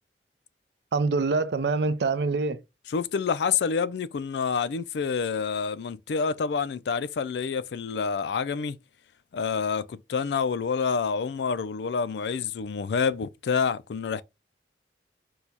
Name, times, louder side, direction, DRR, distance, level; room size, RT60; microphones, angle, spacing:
voice 1, 0.9-2.6, right 3 dB, 70° right, 0.5 m, -25 dB
voice 2, 2.9-8.8 9.3-14.2, left 5 dB, 70° left, 0.4 m, -28 dB
4.6 x 2.3 x 3.9 m
head